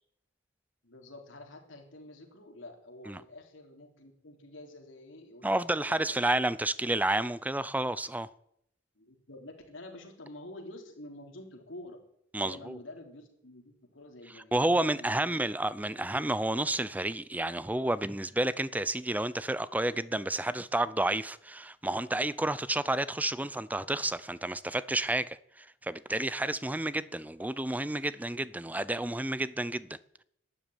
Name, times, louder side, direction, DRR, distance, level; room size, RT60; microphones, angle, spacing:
voice 1, 0.8-6.3 9.0-12.0 12.4-15.5 15.9-16.0 18.8-18.9 19.8-20.0, left 1 dB, 85° left, 3.6 m, -48 dB
voice 2, 5.4-8.3 12.3-12.8 14.3-30.0, right 1 dB, 10° right, 0.6 m, -30 dB
12.5 x 10.0 x 9.3 m
head